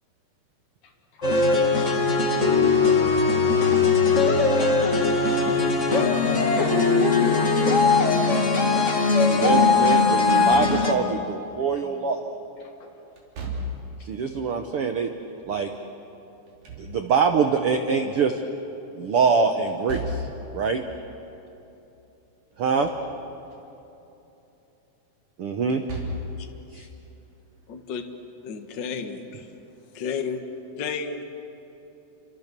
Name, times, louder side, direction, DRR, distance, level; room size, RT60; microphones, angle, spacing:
voice 1, 0.8-1.6 5.3-5.4 5.8-6.1 11.2-11.3 12.6-12.9 14.0-14.1, left 4 dB, 80° left, 1 dB, 4.7 m, -54 dB
sound 1, 1.2-10.9, left 4 dB, 30° left, 1.4 m, -20 dB
voice 2, 9.3-12.2 14.1-15.1 15.5-15.7 16.8-18.4 19.0-20.2 20.5-20.8 22.6-22.9 25.4-25.8 26.7-26.8, right 5 dB, 85° right, 6 dB, 1.2 m, -24 dB
Slam / Thump thud, 10.2-11.2 13.2-14.1 16.3-17.4 19.7-20.5 22.5-23.1 23.5-23.6 25.6-26.4, equal, 70° right, 5.3 m, -35 dB
voice 3, 27.7-28.0 28.4-29.5 29.9-30.4 30.8-31.2, left 6 dB, 50° left, 5 dB, 1.4 m, -32 dB
30.0 x 26.0 x 6.8 m, 3.0 s
omnidirectional pair, 4.2 m